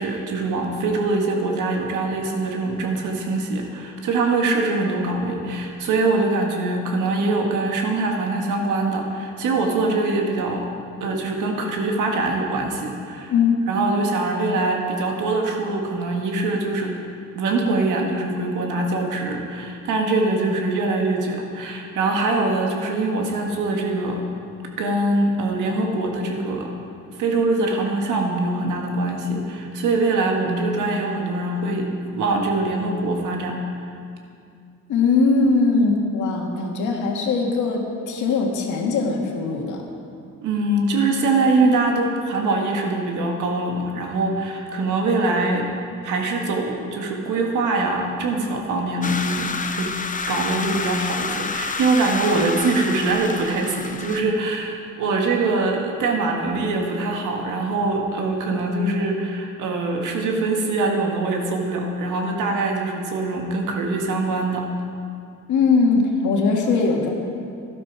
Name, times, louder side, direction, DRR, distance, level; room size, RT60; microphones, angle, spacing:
voice 1, 0.0-10.7 11.0-13.3 13.7-17.0 17.3-24.2 24.8-26.7 27.2-33.6 40.4-45.7 46.0-49.9 50.3-64.7, right 2 dB, 85° right, 1 dB, 1.8 m, -23 dB
voice 2, 13.3-13.9 34.9-39.8 65.5-67.1, left 4 dB, 75° left, 1 dB, 1.9 m, -20 dB
sound 1, 49.0-54.2, left 4 dB, 25° left, 0.8 m, -29 dB
12.5 x 12.0 x 4.7 m, 2.4 s
cardioid pair, 90°, 30 cm